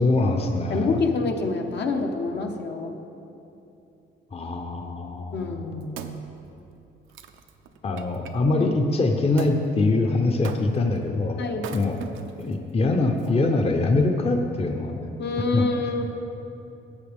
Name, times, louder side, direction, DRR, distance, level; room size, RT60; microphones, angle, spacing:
voice 1, 0.0-1.0 4.3-5.6 7.8-11.4 11.7-12.0 12.4-15.0 15.5-15.6, left 2 dB, 30° left, 4 dB, 0.8 m, -23 dB
voice 2, 0.7-3.0 5.3-6.3 8.6-8.7 11.4-11.7 15.2-16.0, left 3 dB, 60° left, 3 dB, 1.1 m, -27 dB
Wood, 5.5-8.4 9.4-9.6 10.4-11.0 11.5-12.5 13.2-13.3, right 7 dB, 85° right, 0.6 m, -40 dB
14.5 x 7.9 x 3.6 m, 2.8 s
cardioid pair, 90°, 20 cm